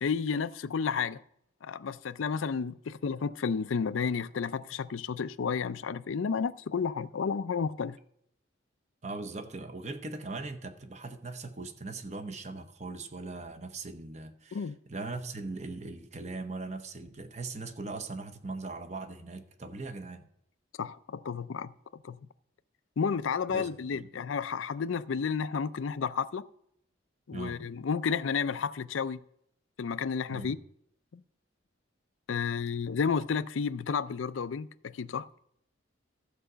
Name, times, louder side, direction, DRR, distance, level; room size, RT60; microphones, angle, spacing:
voice 1, 0.0-1.2 1.6-8.0 14.5-14.8 20.8-21.7 22.0-22.2 23.0-26.4 27.3-29.2 29.8-30.6 31.1-31.2 32.3-35.3, left 6 dB, 85° left, 0.4 m, -31 dB
voice 2, 9.0-20.3 23.5-24.1 27.3-27.6 30.3-30.5, right 3 dB, 35° right, 0.8 m, -40 dB
14.0 x 4.9 x 6.7 m
head